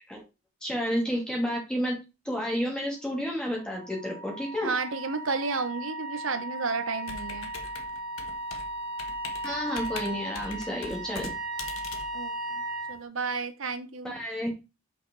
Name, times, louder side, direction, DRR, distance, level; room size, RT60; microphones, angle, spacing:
voice 1, 0.6-1.9 2.2-4.7 9.4-11.3 14.0-14.5, equal, 5° left, -1 dB, 2.6 m, -30 dB
Wind instrument woodwind instrument, 3.5-13.0, right 1 dB, 50° right, 1.5 m, -36 dB
voice 2, 4.6-7.5 12.1-12.6 12.9-14.1, right 4 dB, 75° right, 10 dB, 0.9 m, -32 dB
Computer keyboard, 7.0-13.0, left 4 dB, 85° left, 1.2 m, -42 dB
5.8 x 5.8 x 3.9 m, 0.27 s
head